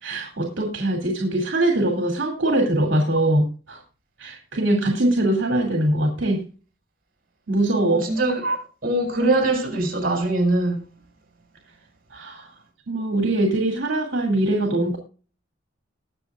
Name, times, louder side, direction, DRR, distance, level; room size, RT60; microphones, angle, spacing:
voice 1, 0.0-3.8 4.2-6.4 7.5-8.1 12.1-12.5 12.9-15.0, right 1 dB, 70° right, 2.6 m, -22 dB
voice 2, 7.9-10.8, right 2 dB, 45° right, 6.4 m, -22 dB
21.0 x 7.0 x 2.4 m
head